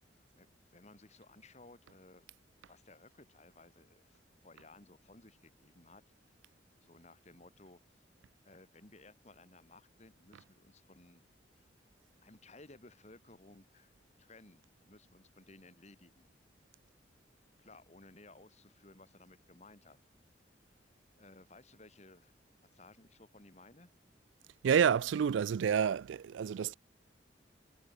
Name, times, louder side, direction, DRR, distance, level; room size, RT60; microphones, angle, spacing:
voice 1, 0.4-2.2 2.7-6.4 6.8-7.8 8.5-11.2 11.6-11.7 12.2-13.9 14.2-16.3 17.6-20.0 21.2-22.3 22.7-23.9, left 2 dB, 40° left, 3.4 m, -58 dB
voice 2, 24.6-26.7, right 7 dB, 85° right, 0.3 m, -29 dB
head